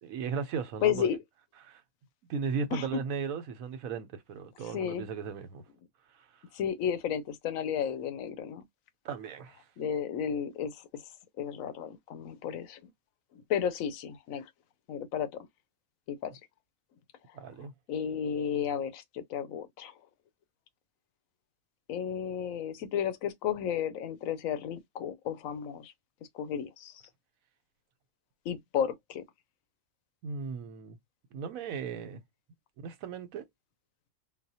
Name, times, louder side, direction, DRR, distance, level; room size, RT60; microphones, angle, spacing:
voice 1, 0.0-1.2 1.6-1.8 2.3-5.6 6.1-6.4 9.0-9.7 17.3-17.7 30.2-31.0 31.3-32.2 32.8-33.5, right 6 dB, 85° right, 1.1 m, -36 dB
voice 2, 0.8-1.2 2.7-3.0 4.7-5.1 6.5-8.7 9.8-11.0 11.4-12.8 13.3-14.5 14.9-15.5 16.1-16.4 17.9-19.9 21.9-25.9 26.3-27.0 28.5-29.2, left 8 dB, 85° left, 1.0 m, -33 dB
4.0 x 2.1 x 2.7 m
omnidirectional pair, 1.4 m